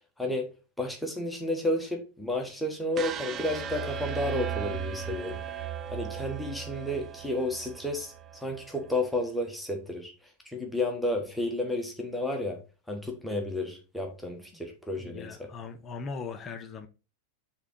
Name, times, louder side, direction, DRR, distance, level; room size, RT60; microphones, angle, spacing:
voice 1, 0.2-0.5 0.8-5.4 5.9-10.1 10.4-12.6 12.9-15.3, left 1 dB, ahead, 1.2 m, -31 dB
sound 1, 2.9-9.0, right 8 dB, 25° right, 0.6 m, -37 dB
voice 2, 15.0-16.9, left 5 dB, 25° left, 0.8 m, -39 dB
7.3 x 3.7 x 4.6 m
figure-of-eight pair, 90°, 0 cm